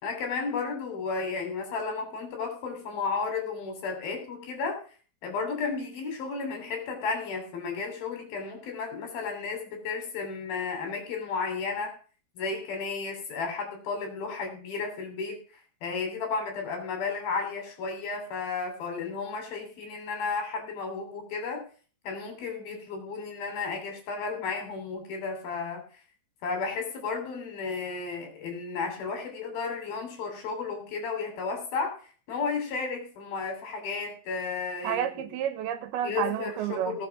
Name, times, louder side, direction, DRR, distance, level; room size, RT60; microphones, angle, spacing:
voice 1, 0.0-4.8 5.2-11.9 12.4-15.4 15.8-21.6 22.0-25.8 26.4-31.9 32.3-35.0 36.0-37.1, left 4 dB, 60° left, 4 dB, 4.9 m, -33 dB
voice 2, 34.8-37.0, right 10 dB, 75° right, 10 dB, 2.7 m, -30 dB
17.5 x 6.2 x 5.9 m, 0.40 s
omnidirectional pair, 4.9 m